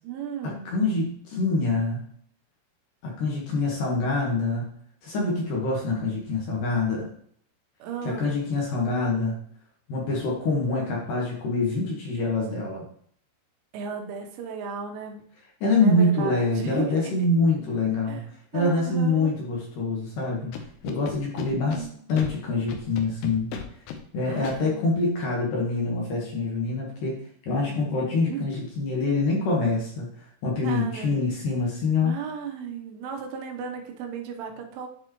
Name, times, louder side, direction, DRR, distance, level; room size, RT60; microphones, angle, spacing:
voice 1, 0.0-0.7 7.8-8.3 13.7-15.2 15.8-17.3 18.1-19.4 21.5-22.0 24.2-24.9 27.6-28.7 30.6-31.2 32.0-34.9, right 6 dB, 75° right, 3 dB, 3.3 m, -36 dB
voice 2, 0.7-2.0 3.0-4.7 5.0-7.1 8.1-9.3 9.9-12.9 15.6-18.2 18.5-20.5 20.8-23.5 24.1-32.1, left 2 dB, 70° left, -3 dB, 2.1 m, -25 dB
Scratching (performance technique), 20.5-21.8 22.2-22.3 22.7-24.0 24.4-24.6, left 8 dB, 85° left, 2.4 m, -36 dB
11.0 x 4.6 x 3.0 m, 0.63 s
omnidirectional pair, 5.9 m